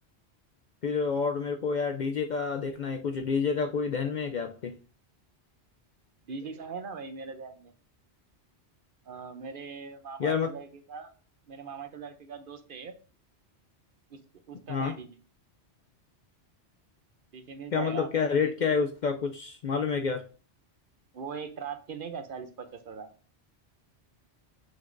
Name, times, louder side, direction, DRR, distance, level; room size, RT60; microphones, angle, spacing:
voice 1, 0.8-4.8 10.2-10.5 14.7-15.0 17.7-20.3, left 5 dB, 55° left, 6 dB, 0.5 m, -28 dB
voice 2, 6.3-7.7 9.0-11.1 11.5-12.9 14.1-14.2 14.5-15.2 17.3-18.1 18.4-18.5 21.1-23.1, right 5 dB, 55° right, 9 dB, 0.8 m, -40 dB
7.2 x 6.1 x 2.6 m, 0.37 s
omnidirectional pair, 1.1 m